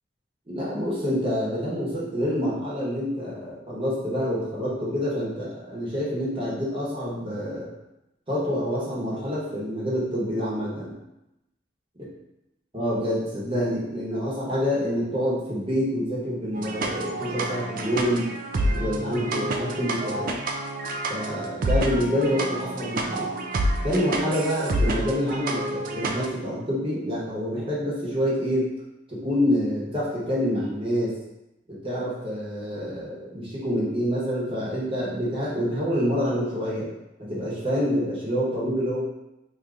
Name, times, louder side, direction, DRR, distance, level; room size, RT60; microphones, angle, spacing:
voice 1, 0.5-7.7 8.3-10.9 12.7-18.3 18.7-20.4 21.1-23.3 23.8-28.7 29.1-31.2 31.7-36.9 37.2-39.0, equal, 30° right, -7 dB, 1.0 m, -27 dB
sound 1, 16.5-26.3, right 1 dB, 50° right, 0.3 m, -28 dB
2.7 x 2.5 x 3.5 m, 0.91 s
head